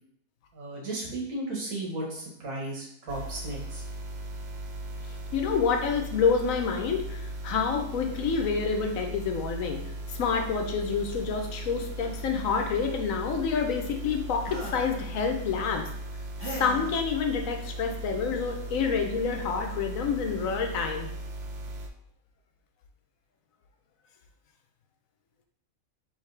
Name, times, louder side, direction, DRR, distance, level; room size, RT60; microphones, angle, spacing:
voice 1, 0.5-3.8, right 2 dB, 85° right, -3 dB, 1.7 m, -35 dB
sound 1, 3.1-21.9, right 1 dB, 60° right, 0.7 m, -38 dB
voice 2, 5.3-9.8 10.1-15.9 16.4-21.1, left 5 dB, 75° left, 4 dB, 1.1 m, -28 dB
sound 2, 14.4-14.9 16.4-16.9 18.3-18.4 18.8-19.0, equal, 10° right, 1.3 m, -38 dB
4.9 x 3.1 x 3.3 m, 0.71 s
omnidirectional pair, 1.4 m